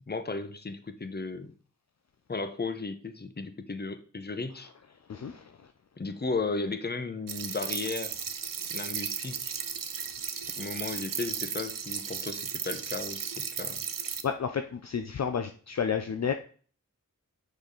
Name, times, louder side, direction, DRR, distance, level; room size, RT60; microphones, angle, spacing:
voice 1, 0.1-1.5 2.3-4.7 6.0-8.1 8.7-9.5 10.6-13.8, left 3 dB, 30° left, 10 dB, 0.8 m, -35 dB
voice 2, 5.1-5.7 14.2-16.3, left 7 dB, 55° left, 7 dB, 0.5 m, -31 dB
sound 1, 7.3-14.2, right 7 dB, 70° right, 0.7 m, -35 dB
6.2 x 5.3 x 3.9 m, 0.42 s
cardioid pair, 50°, 34 cm